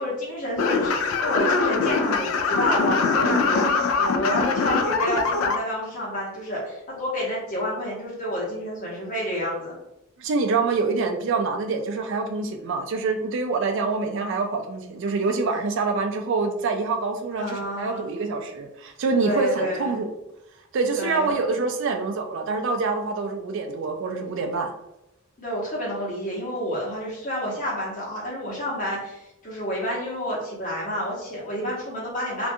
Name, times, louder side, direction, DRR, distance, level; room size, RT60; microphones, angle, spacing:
voice 1, 0.0-9.8 17.4-18.1 19.2-20.0 20.9-21.4 25.4-32.5, equal, 40° left, -5 dB, 1.0 m, -29 dB
sound 1, 0.6-5.6, left 4 dB, 80° left, 0.3 m, -23 dB
voice 2, 10.2-20.1 20.7-24.7, right 4 dB, 60° right, 5 dB, 0.3 m, -26 dB
2.5 x 2.2 x 2.6 m, 0.88 s
head